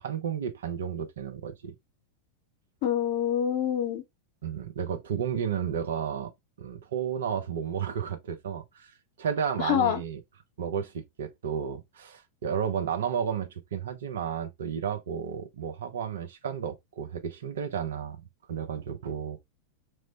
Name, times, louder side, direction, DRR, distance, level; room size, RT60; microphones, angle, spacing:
voice 1, 0.0-1.7 4.4-6.3 6.6-8.9 9.2-10.2 10.6-18.2 18.5-19.4, right 8 dB, 60° right, 0.5 m, -32 dB
voice 2, 2.8-4.0 9.6-10.0, left 9 dB, 50° left, 0.7 m, -26 dB
3.0 x 2.0 x 2.7 m
figure-of-eight pair, 90°, 0 cm